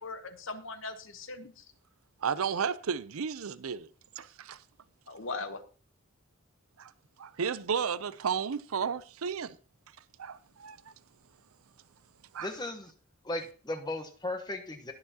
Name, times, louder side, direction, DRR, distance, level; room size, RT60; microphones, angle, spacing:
voice 1, 0.0-1.6 5.1-5.6, left 3 dB, 65° left, 1.1 m, -39 dB
voice 2, 2.2-3.9 4.2-4.6 6.8-6.9 7.2-9.6 10.2-10.8 12.3-12.5, right 6 dB, 85° right, 0.6 m, -33 dB
voice 3, 12.4-12.9 13.2-14.9, left 2 dB, 20° left, 1.1 m, -36 dB
20.0 x 6.9 x 2.9 m
head